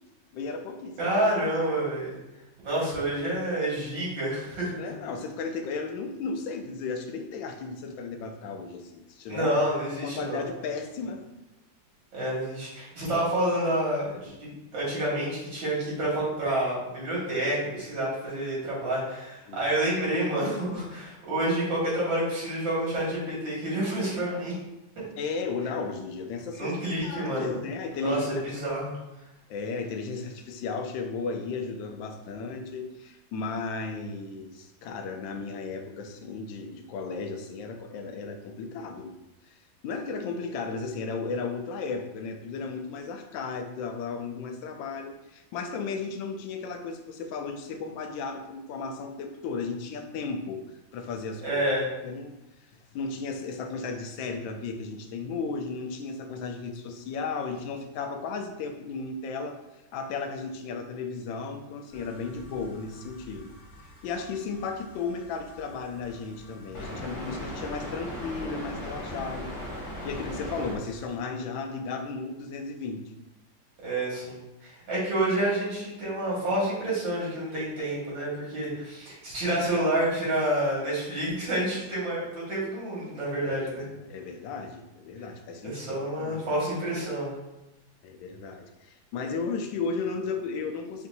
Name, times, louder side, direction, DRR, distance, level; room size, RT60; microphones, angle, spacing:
voice 1, 0.3-1.1 4.8-9.5 10.0-11.2 19.5-19.6 25.2-28.5 29.5-39.2 39.5-39.6 39.8-50.6 50.9-51.6 52.0-52.4 52.9-59.6 59.9-63.5 63.8-69.5 70.0-73.0 83.6-85.8 86.2-86.4 88.0-91.1, left 4 dB, 85° left, 5 dB, 1.3 m, -35 dB
voice 2, 1.0-2.2 2.6-4.7 9.3-10.4 12.1-24.6 26.6-27.6 28.0-28.9 51.4-51.9 73.8-83.8 85.6-87.3, right 1 dB, 80° right, -7 dB, 2.5 m, -28 dB
sound 1, 61.9-71.2, left 1 dB, 60° left, 1.7 m, -40 dB
5.9 x 2.7 x 2.6 m, 0.94 s
omnidirectional pair, 2.0 m